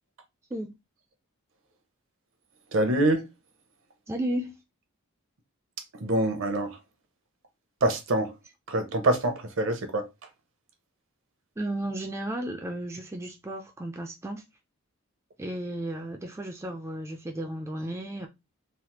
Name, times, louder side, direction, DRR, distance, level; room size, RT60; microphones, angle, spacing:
voice 1, 2.7-3.3 5.9-6.8 7.8-8.3 8.7-10.1, right 1 dB, 60° right, 0.7 m, -25 dB
voice 2, 4.1-4.5 11.6-14.4 15.4-18.3, right 1 dB, 15° right, 0.3 m, -33 dB
3.2 x 2.0 x 2.9 m
head